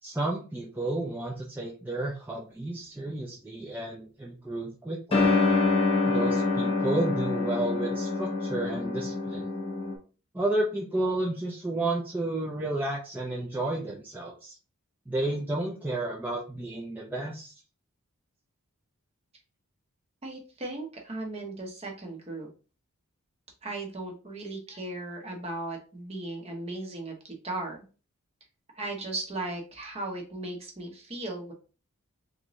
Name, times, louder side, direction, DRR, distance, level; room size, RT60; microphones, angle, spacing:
voice 1, 0.0-5.3 6.0-9.5 10.3-14.6 15.1-17.5, right 2 dB, 10° right, -4 dB, 0.5 m, -31 dB
sound 1, 5.1-9.9, left 3 dB, 25° left, 1.0 m, -26 dB
voice 2, 20.2-22.5 23.6-27.8 28.7-31.5, right 2 dB, 30° right, 2 dB, 0.8 m, -37 dB
3.5 x 2.7 x 3.0 m, 0.35 s
head